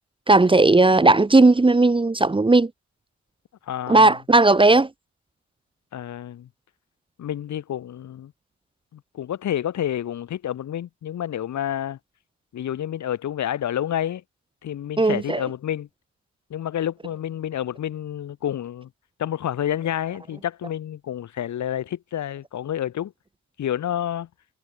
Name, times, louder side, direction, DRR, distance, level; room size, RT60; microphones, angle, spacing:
voice 1, 0.3-2.7 3.9-4.9 15.0-15.4, right 2 dB, 15° right, 1.4 m, -16 dB
voice 2, 3.7-4.1 5.9-6.5 7.2-8.3 8.9-12.0 12.5-14.2 14.6-15.9 16.5-18.9 19.2-23.1 23.6-24.3, left 10 dB, 70° left, 6.6 m, -29 dB
cardioid pair, 90°, 30 cm